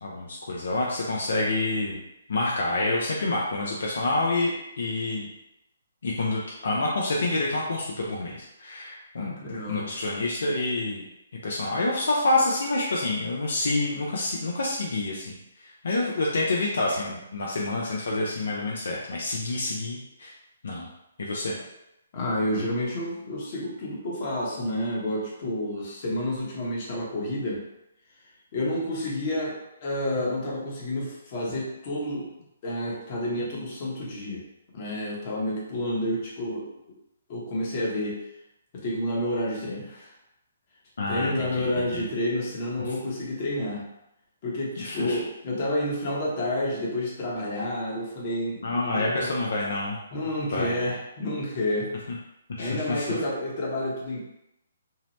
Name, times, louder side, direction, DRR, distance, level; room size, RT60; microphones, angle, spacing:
voice 1, 0.0-2.0 2.3-4.5 4.8-5.3 6.0-9.3 9.7-11.0 11.4-20.3 20.6-20.9 21.2-21.6 41.0-42.0 44.8-45.2 48.6-50.0 50.5-51.0 52.5-53.1, left 2 dB, 70° left, -3 dB, 0.5 m, -28 dB
voice 2, 9.2-9.9 22.1-27.6 28.5-32.3 32.6-34.4 34.7-36.7 37.3-38.2 38.7-40.1 41.1-43.8 44.4-49.3 50.1-51.9 52.6-54.2, left 1 dB, 40° left, -4 dB, 0.9 m, -29 dB
2.8 x 2.0 x 2.9 m, 0.85 s
hypercardioid pair, 145°, 0 cm